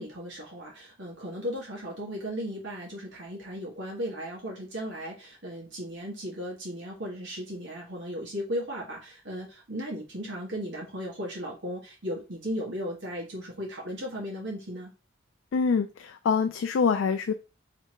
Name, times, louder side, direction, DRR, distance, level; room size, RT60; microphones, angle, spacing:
voice 1, 0.0-14.9, equal, 55° right, -3 dB, 1.5 m, -36 dB
voice 2, 15.5-17.3, left 5 dB, 65° left, 8 dB, 0.3 m, -25 dB
3.4 x 2.8 x 4.3 m, 0.30 s
head